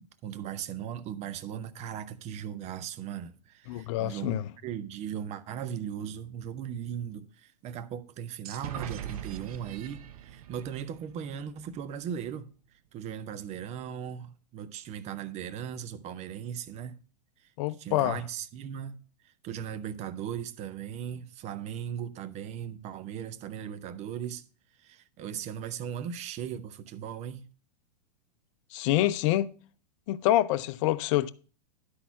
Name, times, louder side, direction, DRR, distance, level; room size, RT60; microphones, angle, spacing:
voice 1, 0.0-12.5 12.9-17.0 17.4-19.0 19.2-24.4 24.8-27.5, right 9 dB, 35° right, 0.8 m, -38 dB
voice 2, 3.7-4.4 17.6-18.2 28.7-29.5 30.1-31.3, left 14 dB, 50° left, 0.6 m, -26 dB
sound 1, 8.4-12.1, right 9 dB, 65° right, 0.8 m, -42 dB
11.5 x 4.1 x 5.7 m
hypercardioid pair, 100°, 21 cm